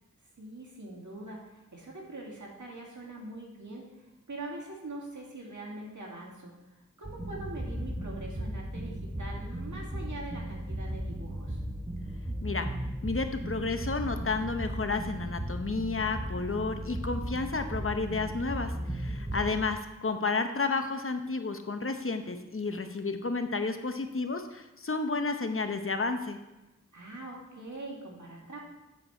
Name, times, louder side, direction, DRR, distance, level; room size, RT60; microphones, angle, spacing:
voice 1, 0.4-3.8 4.3-11.6 19.2-19.6 26.9-28.6, right 2 dB, 80° right, -2 dB, 2.1 m, -43 dB
sound 1, 7.0-19.7, right 1 dB, 15° right, 1.1 m, -36 dB
voice 2, 13.0-26.4, left 3 dB, 45° left, 7 dB, 0.9 m, -31 dB
8.6 x 6.8 x 4.4 m, 1.0 s
wide cardioid pair, 45°, 29 cm